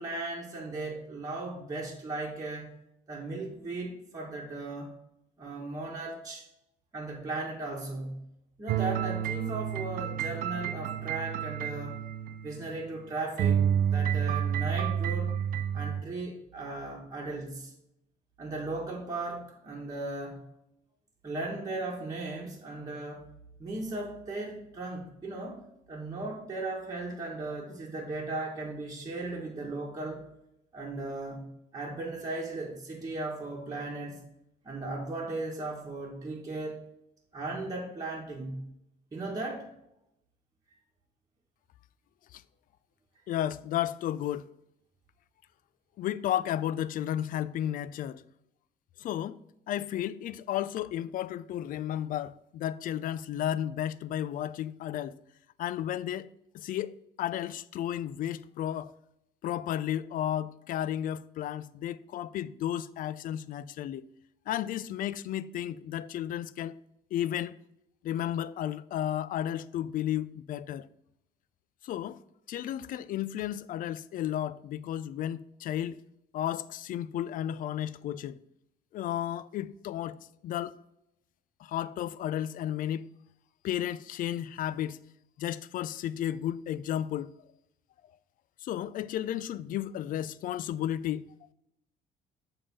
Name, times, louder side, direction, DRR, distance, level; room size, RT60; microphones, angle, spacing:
voice 1, 0.0-2.7 3.1-4.9 5.4-6.5 6.9-8.2 8.6-12.0 12.4-15.4 15.7-17.7 18.4-20.4 21.2-23.3 23.6-25.6 25.9-30.2 30.7-31.4 31.7-34.2 34.6-36.8 37.3-38.6 39.1-39.6, right 2 dB, 20° right, 1.6 m, -37 dB
sound 1, 8.7-13.0 13.4-16.0, right 9 dB, 60° right, 0.4 m, -30 dB
voice 2, 43.3-44.5 46.0-48.2 49.0-49.4 49.7-55.2 55.6-56.3 56.5-58.9 59.4-64.1 64.5-66.8 67.1-67.6 68.0-70.9 71.8-72.2 72.5-76.0 76.3-78.4 78.9-80.8 81.6-83.1 83.6-85.0 85.4-87.3 88.6-91.5, left 11 dB, 55° left, 0.4 m, -33 dB
7.1 x 3.5 x 5.5 m
cardioid pair, 110°, 17 cm